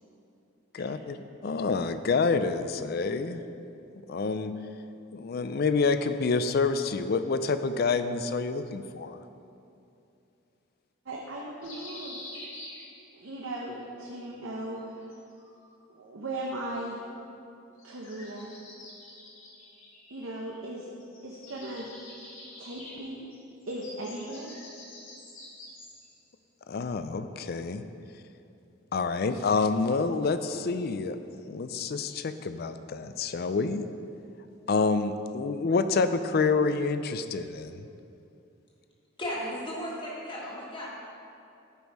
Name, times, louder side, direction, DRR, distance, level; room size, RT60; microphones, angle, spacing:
voice 1, 0.7-1.2 1.4-3.4 4.1-4.5 5.1-9.2 26.7-27.8 28.9-31.2 31.5-33.8 34.7-37.9, left 4 dB, 50° left, 10 dB, 0.4 m, -28 dB
voice 2, 11.1-12.2 13.1-15.1 15.9-17.0 17.8-18.6 20.1-20.9 21.2-21.9 22.6-23.3 23.7-24.5, right 1 dB, 75° right, -2 dB, 0.9 m, -37 dB
sound 1, 11.6-13.4 14.8-15.8 17.8-20.7 21.0-26.2, left 1 dB, 75° left, 2.2 m, -47 dB
voice 3, 39.2-40.9, equal, 25° left, -4 dB, 1.6 m, -35 dB
10.5 x 5.4 x 4.6 m, 2.6 s
head